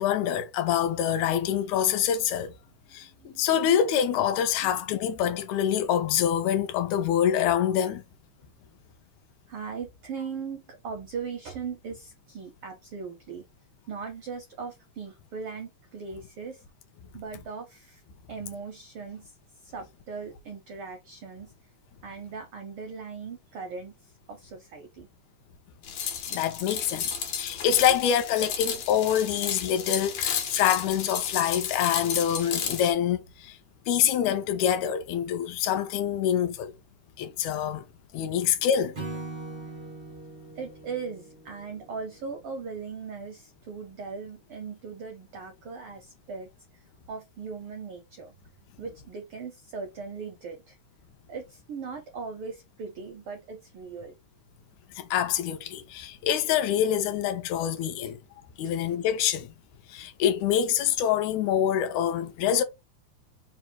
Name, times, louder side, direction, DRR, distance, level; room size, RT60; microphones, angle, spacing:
voice 1, 0.0-2.5 2.9-8.0 26.3-33.6 33.9-36.7 37.2-37.9 38.1-39.0 55.0-58.2 58.6-59.5 59.9-62.6, left 9 dB, 85° left, 2.0 m, -26 dB
voice 2, 2.9-3.5 4.6-4.7 9.5-13.4 13.9-16.6 17.1-18.0 18.3-19.3 19.6-21.5 22.0-25.1 38.1-38.3 40.5-46.5 46.7-48.3 48.8-50.8 51.3-54.1 58.6-58.7, right 5 dB, 80° right, 1.2 m, -39 dB
sound 1, 25.8-32.9, left 7 dB, 70° left, 1.8 m, -32 dB
Acoustic guitar / Strum, 38.9-42.3, right 3 dB, 50° right, 0.5 m, -41 dB
4.7 x 2.1 x 4.4 m
omnidirectional pair, 3.4 m